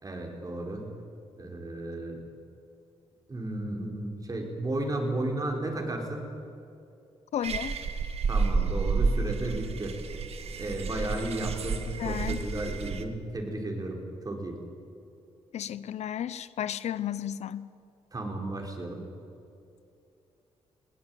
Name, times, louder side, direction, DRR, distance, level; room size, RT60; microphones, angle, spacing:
voice 1, 0.0-0.9 1.4-2.2 3.3-6.3 8.3-10.0 10.6-14.6 18.1-19.0, right 2 dB, 30° right, 2 dB, 4.7 m, -33 dB
voice 2, 7.3-7.8 12.0-12.5 15.5-17.7, left 10 dB, 75° left, 16 dB, 0.7 m, -33 dB
sound 1, 7.4-13.0, right 4 dB, 65° right, 1.6 m, -30 dB
20.5 x 18.0 x 9.1 m, 2.6 s
cardioid pair, 80°, 12 cm